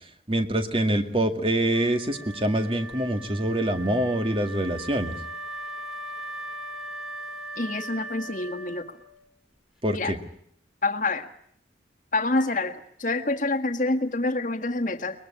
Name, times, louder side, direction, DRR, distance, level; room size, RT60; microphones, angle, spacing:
voice 1, 0.3-5.2 9.8-10.2, right 1 dB, 30° right, 7 dB, 2.1 m, -25 dB
Wind instrument woodwind instrument, 1.7-9.3, right 1 dB, ahead, 2.4 m, -39 dB
voice 2, 7.6-8.8 9.9-10.1 10.8-11.3 12.1-15.3, left 2 dB, 45° left, 6 dB, 1.7 m, -27 dB
23.0 x 22.0 x 10.0 m, 0.65 s
head